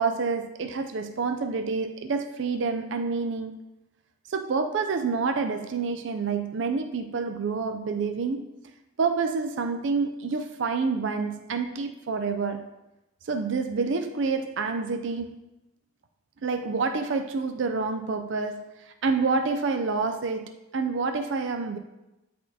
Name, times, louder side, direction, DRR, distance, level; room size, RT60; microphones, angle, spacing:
voice 1, 0.0-3.5 4.3-8.5 9.0-12.6 13.2-15.4 16.4-21.8, right 4 dB, 65° right, 6 dB, 0.4 m, -28 dB
12.5 x 4.2 x 2.8 m, 0.96 s
head